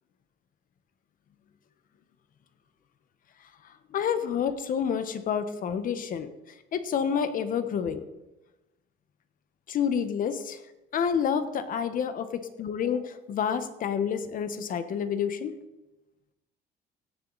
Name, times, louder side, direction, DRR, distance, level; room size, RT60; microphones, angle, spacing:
voice 1, 3.9-6.3 6.7-8.0 9.7-10.6 10.9-15.6, left 7 dB, 55° left, 10 dB, 1.1 m, -29 dB
17.0 x 7.2 x 4.0 m, 1.0 s
cardioid pair, 110°, 17 cm